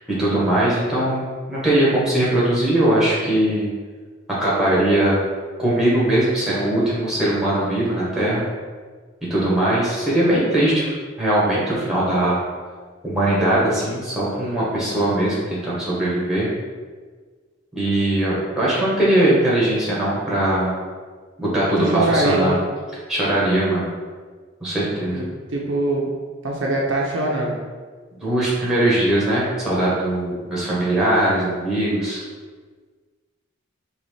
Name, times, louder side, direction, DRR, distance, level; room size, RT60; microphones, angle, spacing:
voice 1, 0.2-1.2 1.5-3.7 4.4-5.2 5.6-8.5 9.3-10.9 11.2-12.4 13.0-16.5 17.7-20.8 21.4-22.5 23.1-23.9 24.6-25.2 28.2-32.2, right 1 dB, 5° right, -7 dB, 1.1 m, -20 dB
voice 2, 21.8-22.6 25.1-26.1 26.4-27.6, right 2 dB, 60° right, -2 dB, 0.5 m, -22 dB
4.0 x 3.0 x 3.2 m, 1.5 s
head